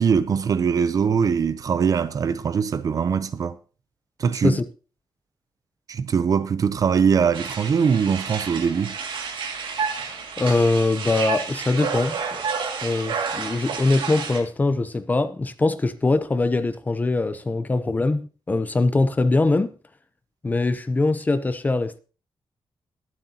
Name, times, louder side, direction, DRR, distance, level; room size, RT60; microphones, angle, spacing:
voice 1, 0.0-3.6 4.2-4.6 5.9-9.0, right 6 dB, 45° right, 0.6 m, -22 dB
sound 1, 7.3-14.4, right 5 dB, 85° right, 2.3 m, -30 dB
voice 2, 10.4-12.4 12.8-19.7 20.4-22.0, left 2 dB, 20° left, 0.7 m, -22 dB
21.5 x 7.7 x 2.9 m
wide cardioid pair, 170°, 8 cm